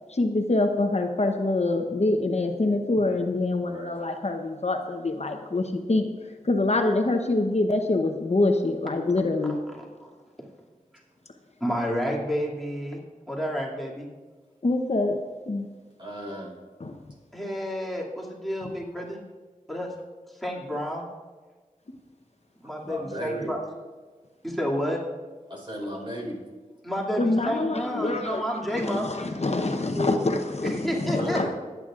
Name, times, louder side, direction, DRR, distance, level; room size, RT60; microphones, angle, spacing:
voice 1, 0.1-6.1 6.4-9.6 14.6-15.2 15.5-15.7 16.8-16.9 27.2-28.4 28.8-31.5, left 2 dB, 55° left, 4 dB, 0.9 m, -25 dB
voice 2, 9.4-10.1 11.6-13.0 13.3-14.1 17.3-19.2 19.7-19.9 20.3-21.1 22.6-23.6 24.4-25.0 26.8-29.1 30.6-31.5, equal, ahead, -4 dB, 2.4 m, -30 dB
voice 3, 16.0-16.5 22.8-23.5 25.5-26.4 29.9-30.4 31.2-31.5, equal, 35° right, -1 dB, 4.3 m, -33 dB
25.0 x 9.1 x 2.5 m, 1.4 s
wide cardioid pair, 55°, 13 cm